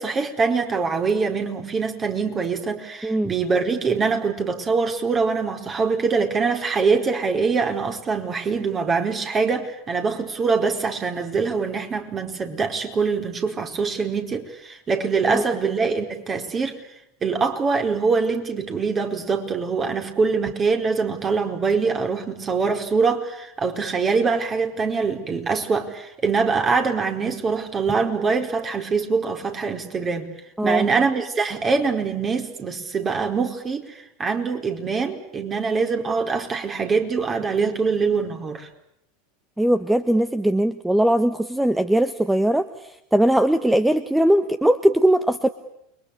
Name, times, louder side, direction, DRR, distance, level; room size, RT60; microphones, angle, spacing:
voice 1, 0.0-16.8 17.2-30.3 30.6-38.7, right 5 dB, 30° right, 4 dB, 4.7 m, -24 dB
voice 2, 39.6-45.5, right 1 dB, 5° right, 11 dB, 1.3 m, -20 dB
29.5 x 23.0 x 8.5 m, 0.77 s
hypercardioid pair, 85°, 0 cm